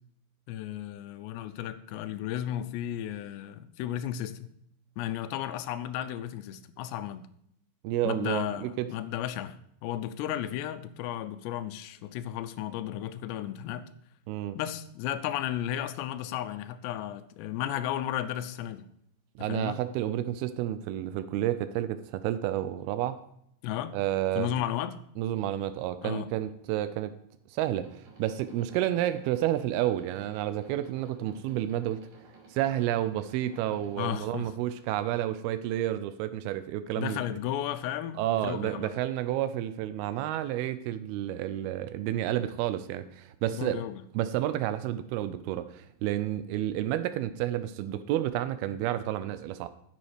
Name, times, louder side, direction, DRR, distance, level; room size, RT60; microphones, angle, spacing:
voice 1, 0.5-4.6 5.0-7.3 8.0-13.9 14.6-18.9 19.4-19.8 23.6-24.0 24.4-25.0 26.0-26.3 34.0-34.5 37.0-38.9 43.5-44.0, left 11 dB, 90° left, 2.8 m, -34 dB
voice 2, 7.8-8.9 14.3-14.6 19.4-23.2 23.9-24.5 25.2-27.1 27.5-32.1 32.5-37.3 38.2-43.8 44.1-49.7, right 12 dB, 80° right, 2.3 m, -30 dB
sound 1, 27.6-34.2, right 4 dB, 55° right, 4.6 m, -55 dB
11.0 x 7.2 x 4.9 m
omnidirectional pair, 4.8 m